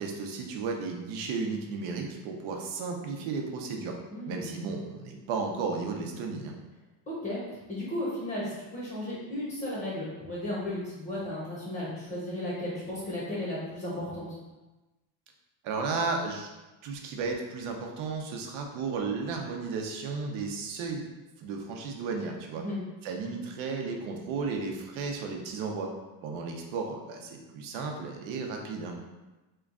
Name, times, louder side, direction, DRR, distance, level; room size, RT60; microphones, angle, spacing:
voice 1, 0.0-4.0 4.3-6.5 15.6-16.5 16.8-21.1 21.4-22.6 23.0-25.9 26.2-29.0, right 4 dB, 80° right, 2 dB, 0.7 m, -34 dB
voice 2, 4.1-4.5 7.1-7.4 7.7-14.3 22.6-22.8, left 1 dB, 20° left, -8 dB, 0.7 m, -34 dB
3.0 x 2.3 x 3.6 m, 1.1 s
cardioid pair, 160°, 48 cm